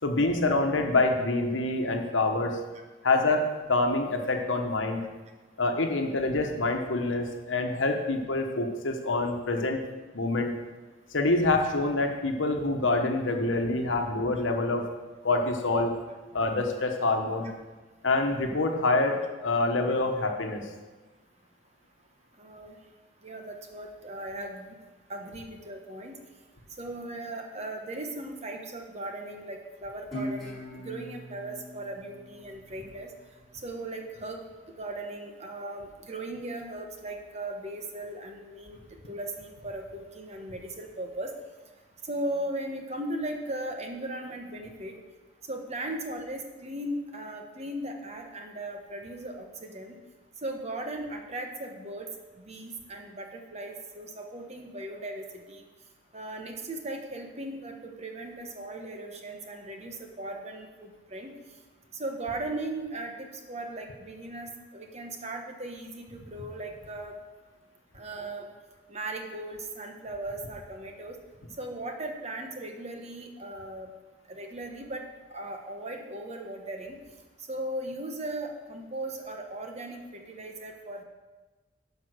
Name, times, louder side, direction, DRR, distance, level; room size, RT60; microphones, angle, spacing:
voice 1, 0.0-2.6 3.0-3.4 3.7-5.0 5.6-9.8 10.1-10.5 11.1-14.9 15.2-15.9 16.3-17.5 18.0-20.7, left 2 dB, 85° left, 4 dB, 1.2 m, -26 dB
voice 2, 22.4-22.8 23.2-24.7 25.1-26.2 26.8-33.1 33.6-34.4 34.7-38.8 39.1-41.3 42.0-45.0 45.5-50.0 50.4-52.1 52.4-55.7 56.1-61.3 61.9-67.2 67.9-68.5 68.9-71.2 71.6-73.9 74.3-75.0 75.3-77.0 77.5-81.0, right 1 dB, 35° right, 3 dB, 1.1 m, -37 dB
Guitar, 30.1-33.3, equal, ahead, 3.6 m, -40 dB
10.5 x 5.3 x 6.6 m, 1.2 s
head